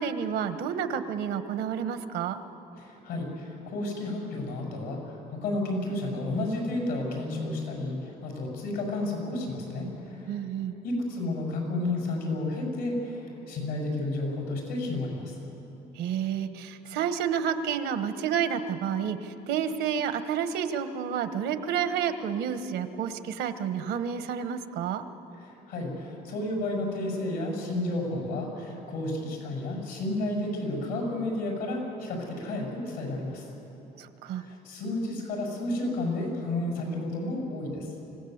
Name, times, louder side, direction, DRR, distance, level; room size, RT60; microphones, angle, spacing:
voice 1, 0.0-2.4 10.3-10.8 15.9-25.0 34.0-34.4, right 8 dB, 85° right, 10 dB, 1.2 m, -30 dB
voice 2, 2.8-10.4 10.8-15.4 25.4-33.5 34.3-37.9, left 2 dB, 85° left, 0 dB, 7.1 m, -32 dB
25.5 x 17.0 x 8.0 m, 3.0 s
cardioid pair, 110°, 17 cm